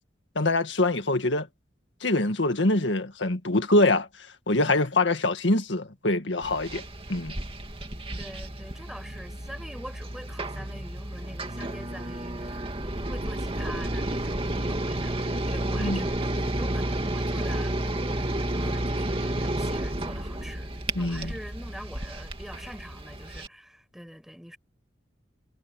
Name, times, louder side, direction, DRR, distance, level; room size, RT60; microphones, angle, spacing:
voice 1, 0.4-1.5 2.0-4.1 4.5-6.8 7.1-7.3 15.8-16.0 20.9-21.3, left 2 dB, 85° left, 1.8 m, -24 dB
sound 1, 6.4-23.5, right 1 dB, 30° right, 2.5 m, -31 dB
voice 2, 8.2-24.6, equal, ahead, 5.1 m, -44 dB
head